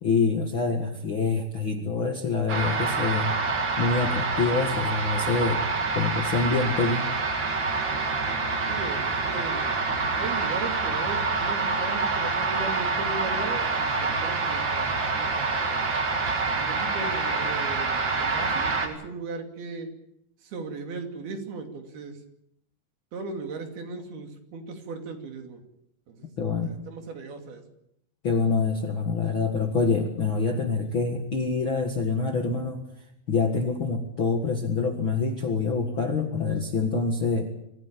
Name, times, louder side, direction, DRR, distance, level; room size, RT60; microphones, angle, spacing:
voice 1, 0.0-3.4 3.8-5.6 6.0-7.1 26.4-26.7 28.2-32.8 33.3-37.5, left 4 dB, 45° left, 4 dB, 1.7 m, -26 dB
sound 1, 2.5-18.9, right 4 dB, 35° right, 2.5 m, -27 dB
voice 2, 8.7-15.9 16.6-19.9 20.4-22.2 23.1-25.6 26.1-26.3 26.6-27.6, right 4 dB, 70° right, 5 dB, 4.5 m, -37 dB
25.5 x 15.0 x 8.9 m, 0.77 s
omnidirectional pair, 4.6 m